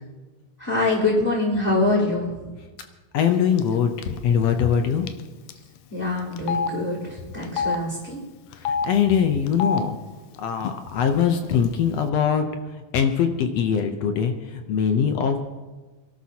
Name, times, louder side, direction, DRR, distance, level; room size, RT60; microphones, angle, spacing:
voice 1, 0.6-2.5 5.9-8.2, left 2 dB, 5° left, -11 dB, 3.4 m, -24 dB
voice 2, 3.1-5.1 8.6-10.0 10.4-12.4 12.9-15.4, left 7 dB, 70° left, 6 dB, 1.7 m, -22 dB
Telephone, 3.6-3.8 4.0-4.2 5.1-5.2 5.5-5.6 6.4-6.7 7.4-7.8 8.5-8.9 9.5-9.8 10.6-10.7 11.0-11.7, left 6 dB, 85° left, 2.2 m, -26 dB
27.0 x 12.5 x 2.9 m, 1.2 s
omnidirectional pair, 3.6 m